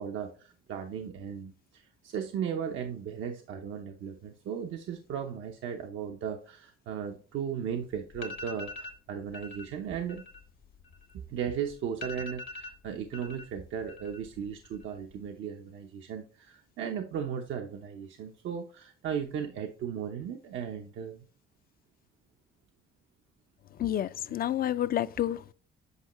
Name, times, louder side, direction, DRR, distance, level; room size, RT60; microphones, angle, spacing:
voice 1, 0.0-10.2 11.1-21.3, right 8 dB, 75° right, 0.7 m, -36 dB
sound 1, 7.7-7.8 8.1-9.0 9.3-9.7 10.0-11.4 11.7-11.8 12.0-13.4 13.7-14.3 14.6-15.2, left 3 dB, 75° left, 1.5 m, -43 dB
voice 2, 23.8-25.5, left 12 dB, 50° left, 0.4 m, -29 dB
8.2 x 5.3 x 3.0 m
cardioid pair, 90°, 20 cm